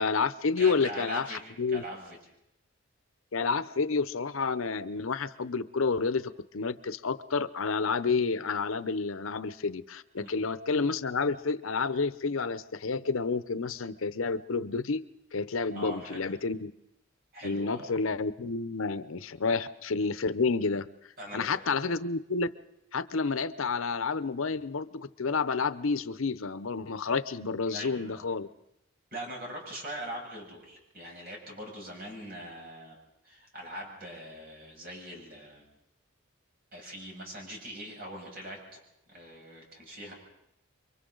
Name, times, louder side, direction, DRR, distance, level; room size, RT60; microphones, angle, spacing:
voice 1, 0.0-1.8 3.3-15.0 15.3-16.7 17.4-20.9 21.3-22.5 22.9-28.5, left 4 dB, 80° left, 13 dB, 0.8 m, -30 dB
voice 2, 0.6-2.2 10.2-10.3 15.7-16.2 17.3-17.9 21.2-21.8 27.7-28.3 29.1-33.0 33.2-35.6 36.7-38.8 39.1-40.1, right 1 dB, 45° right, 0 dB, 6.8 m, -42 dB
29.0 x 23.5 x 3.9 m, 0.81 s
head